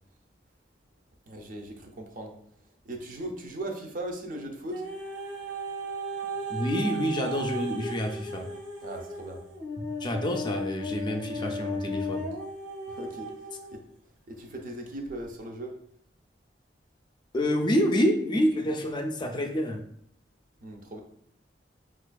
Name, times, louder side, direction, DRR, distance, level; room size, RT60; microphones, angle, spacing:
voice 1, 1.3-2.4 2.8-4.8 8.8-9.4 12.9-13.3 13.7-13.9 14.3-15.8 20.6-21.0, right 1 dB, 50° right, 3 dB, 0.5 m, -38 dB
sound 1, 4.7-13.8 14.5-14.6, equal, 80° right, 1.0 m, -36 dB
voice 2, 6.5-8.5 10.0-12.3 17.3-19.8, equal, 25° left, 3 dB, 0.4 m, -27 dB
4.9 x 2.4 x 2.3 m, 0.67 s
head